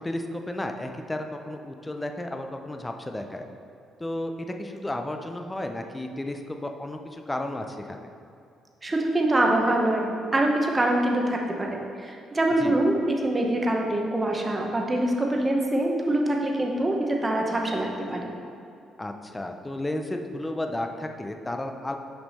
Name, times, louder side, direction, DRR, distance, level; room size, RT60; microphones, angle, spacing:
voice 1, 0.0-3.5 4.0-8.1 12.6-12.8 19.0-22.0, left 1 dB, 10° left, 4 dB, 0.4 m, -33 dB
voice 2, 8.8-18.3, right 1 dB, 20° right, 1 dB, 0.8 m, -24 dB
5.9 x 5.4 x 4.1 m, 2.6 s
cardioid pair, 115°, 0 cm